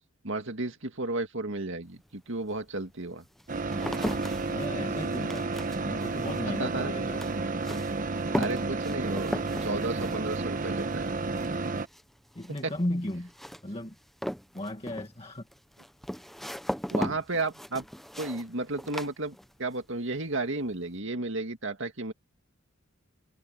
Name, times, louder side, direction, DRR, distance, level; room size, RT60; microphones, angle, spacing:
voice 1, 0.2-3.2 6.6-6.9 8.4-11.1 12.6-12.7 16.9-17.8 18.2-22.1, right 2 dB, 60° right, 2.2 m, -33 dB
sound 1, 1.9-2.0 2.7-19.8 20.1-20.7, equal, ahead, 0.6 m, -38 dB
sound 2, 3.5-11.9, right 3 dB, 40° right, 1.1 m, -31 dB
voice 2, 4.5-5.5 5.9-7.2 12.4-13.3 13.6-14.0 14.5-15.5, left 1 dB, 25° left, 1.8 m, -35 dB
head